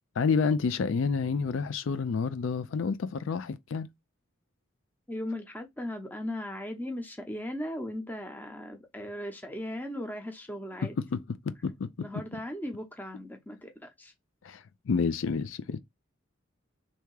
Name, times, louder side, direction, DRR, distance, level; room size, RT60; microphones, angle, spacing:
voice 1, 0.2-3.9 10.8-11.2 11.4-12.1 14.4-15.8, left 5 dB, 70° left, 0.4 m, -29 dB
voice 2, 5.1-11.0 12.0-14.1, left 1 dB, 10° left, 0.8 m, -37 dB
3.5 x 2.8 x 4.6 m
head